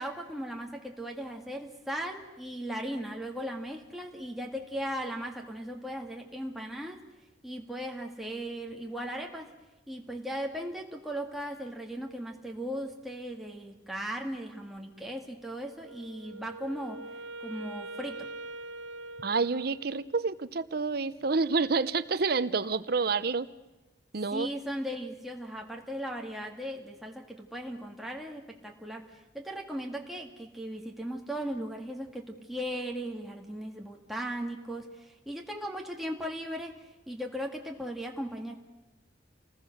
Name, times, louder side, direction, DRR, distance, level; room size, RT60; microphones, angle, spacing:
voice 1, 0.0-7.0 7.4-9.5 9.9-17.0 17.4-18.3 24.3-38.6, equal, ahead, 0 dB, 2.0 m, -37 dB
Wind instrument woodwind instrument, 15.8-20.2, right 2 dB, 80° right, 1.2 m, -43 dB
voice 2, 19.2-23.5 24.1-24.5, right 4 dB, 55° right, 15 dB, 0.7 m, -28 dB
29.5 x 20.0 x 6.5 m, 1.1 s
head